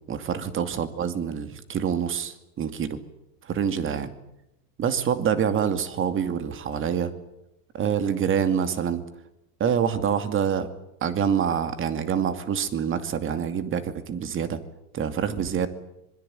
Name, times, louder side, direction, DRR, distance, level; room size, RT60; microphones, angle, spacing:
voice 1, 0.1-3.0 3.4-4.1 4.8-7.1 7.7-9.0 9.6-10.7 11.0-14.6 14.9-15.7, right 8 dB, 25° right, 10 dB, 2.5 m, -26 dB
26.0 x 21.5 x 9.1 m, 0.85 s
supercardioid pair, 135°, 47 cm